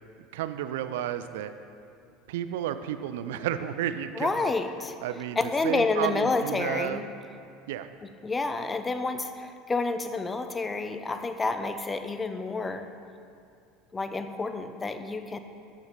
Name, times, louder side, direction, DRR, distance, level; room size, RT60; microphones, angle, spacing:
voice 1, 0.3-1.5 2.3-4.5 5.0-7.0 7.7-7.9, right 10 dB, 65° right, 10 dB, 0.4 m, -32 dB
voice 2, 4.2-4.9 5.4-7.1 8.0-12.9 13.9-15.4, left 3 dB, 20° left, 9 dB, 0.6 m, -29 dB
13.0 x 5.8 x 4.2 m, 2.4 s
figure-of-eight pair, 70°, 0 cm